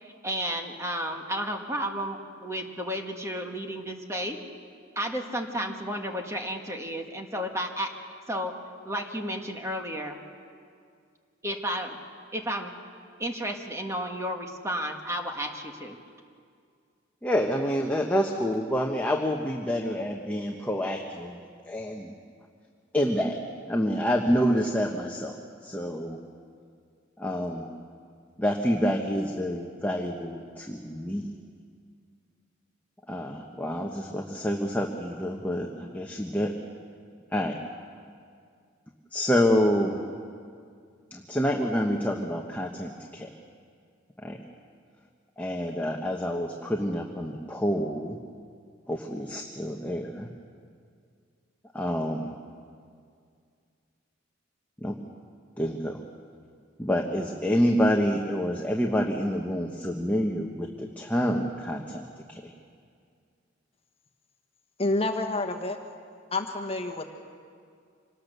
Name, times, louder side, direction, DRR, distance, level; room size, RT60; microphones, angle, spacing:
voice 1, 0.0-4.4 4.9-7.9 8.3-8.5 8.8-10.2 11.4-12.0 12.3-12.7 13.2-16.0, equal, 15° right, 3 dB, 1.4 m, -32 dB
voice 2, 17.2-21.4 21.7-22.1 22.9-23.4 23.7-25.3 25.6-26.2 27.2-27.7 28.4-31.3 33.1-36.5 37.3-37.6 39.1-40.0 41.1-43.3 44.2-44.4 45.4-48.2 48.9-50.3 51.7-52.3 54.8-55.0 55.6-56.0 56.8-62.0 62.3-62.5, equal, 10° left, 1 dB, 1.1 m, -27 dB
voice 3, 64.8-65.8 66.3-67.0, left 2 dB, 30° left, 4 dB, 1.4 m, -28 dB
26.0 x 18.5 x 6.8 m, 2.2 s
head